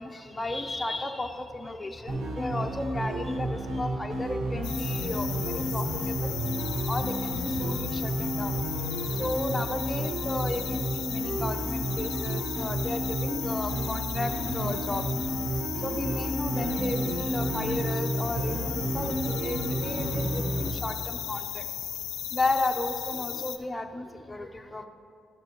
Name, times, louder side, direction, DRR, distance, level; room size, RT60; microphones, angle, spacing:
voice 1, 0.0-6.3 6.9-8.5 9.2-15.0 15.8-18.6 18.9-21.6 22.3-24.9, left 2 dB, 15° left, 4 dB, 0.5 m, -34 dB
sound 1, 2.1-20.7, right 1 dB, 85° right, 1.2 m, -31 dB
sound 2, 4.6-23.6, left 12 dB, 85° left, 0.4 m, -36 dB
11.5 x 6.6 x 3.0 m, 2.3 s
cardioid pair, 90°, 0 cm